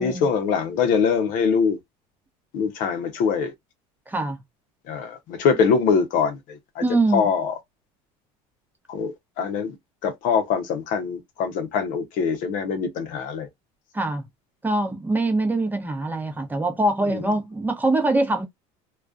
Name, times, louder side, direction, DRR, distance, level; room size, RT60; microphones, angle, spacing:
voice 1, 0.0-1.8 2.5-3.5 4.9-6.8 7.1-7.6 8.9-9.8 10.0-13.5 17.1-17.2, left 6 dB, 65° left, 0.7 m, -23 dB
voice 2, 4.1-4.4 6.8-7.3 13.9-14.2 14.6-18.4, right 2 dB, 10° right, 0.7 m, -23 dB
2.3 x 2.2 x 2.4 m
supercardioid pair, 105°, 15 cm